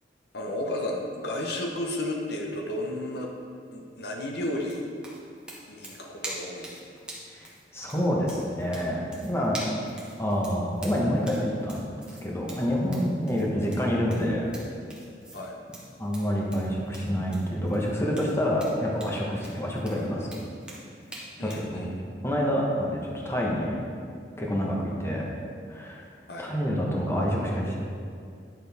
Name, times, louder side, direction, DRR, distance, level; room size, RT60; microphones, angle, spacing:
voice 1, 0.3-3.3 3.7-4.8 5.7-6.8 15.3-15.5 21.4-22.0 26.3-26.5, left 1 dB, 65° left, 0 dB, 0.9 m, -33 dB
sound 1, 4.6-21.7, right 1 dB, 5° right, 1.3 m, -44 dB
voice 2, 7.7-9.6 10.2-11.9 12.2-14.5 16.0-20.4 21.4-21.9 22.2-23.7 24.4-25.3 25.7-26.0 26.4-27.7, equal, 15° left, -3 dB, 1.2 m, -27 dB
9.9 x 6.7 x 3.5 m, 2.2 s
head